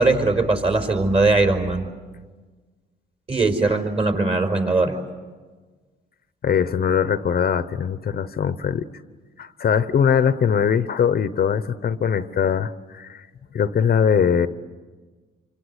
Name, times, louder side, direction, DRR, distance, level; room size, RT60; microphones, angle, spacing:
voice 1, 0.0-1.8 3.3-5.0, right 3 dB, 30° right, 4 dB, 4.8 m, -20 dB
voice 2, 6.4-8.9 9.4-13.3 13.5-14.5, left 7 dB, 50° left, 12 dB, 1.0 m, -21 dB
27.5 x 25.0 x 8.1 m, 1.4 s
cardioid pair, 90°, 20 cm